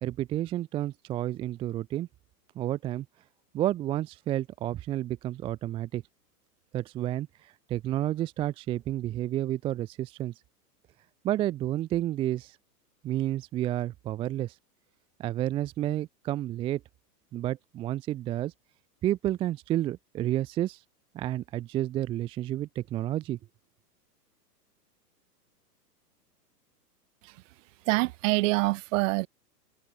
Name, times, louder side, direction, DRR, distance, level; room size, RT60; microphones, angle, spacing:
voice 1, 0.0-2.1 2.6-3.1 3.5-6.0 6.7-10.3 11.2-12.6 13.0-14.6 15.2-16.8 17.3-18.5 19.0-20.8 21.1-23.4, right 13 dB, 10° right, 0.4 m, -30 dB
voice 2, 27.9-29.3, right 22 dB, 50° right, 2.6 m, -25 dB
hypercardioid pair, 120°, 48 cm